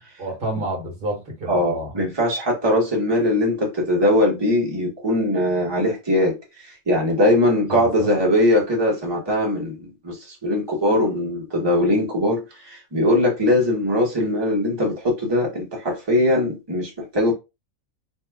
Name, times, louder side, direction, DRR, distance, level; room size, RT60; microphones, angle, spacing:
voice 1, 0.2-1.9 7.7-8.1, right 1 dB, 40° right, 1.3 m, -29 dB
voice 2, 1.5-17.3, left 1 dB, 20° right, 1.1 m, -21 dB
2.8 x 2.4 x 3.4 m
omnidirectional pair, 1.4 m